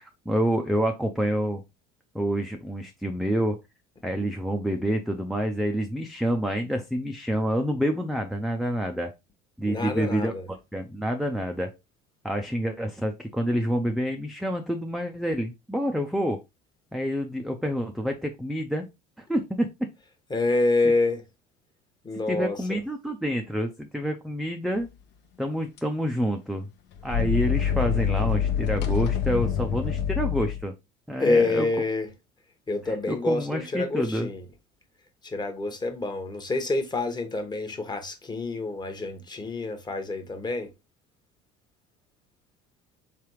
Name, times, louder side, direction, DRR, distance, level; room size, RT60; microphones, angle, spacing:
voice 1, 0.0-1.6 2.1-3.6 4.0-9.1 9.6-11.7 12.2-16.4 16.9-18.9 19.2-19.7 22.3-24.9 25.4-26.7 27.0-30.7 31.1-31.7 32.9-34.3, equal, ahead, 0.4 m, -28 dB
voice 2, 9.6-10.5 20.3-21.2 22.0-22.8 31.2-32.1 32.7-34.4 35.2-40.7, left 2 dB, 20° left, 1.0 m, -27 dB
sound 1, 25.8-25.9 26.9-30.6, left 8 dB, 60° left, 0.7 m, -26 dB
3.6 x 3.4 x 3.0 m
supercardioid pair, 95°, 20 cm